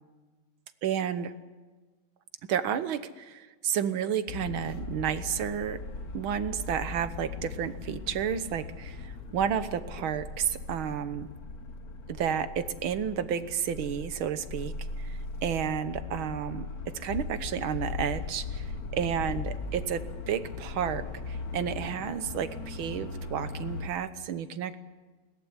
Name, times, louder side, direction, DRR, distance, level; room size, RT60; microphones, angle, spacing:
voice 1, 0.8-1.3 2.5-5.8 6.1-11.3 12.1-24.8, right 8 dB, 70° right, 12 dB, 1.9 m, -31 dB
sound 1, 4.3-23.9, left 4 dB, 45° left, 1.6 m, -39 dB
21.5 x 18.0 x 9.8 m, 1.3 s
omnidirectional pair, 2.4 m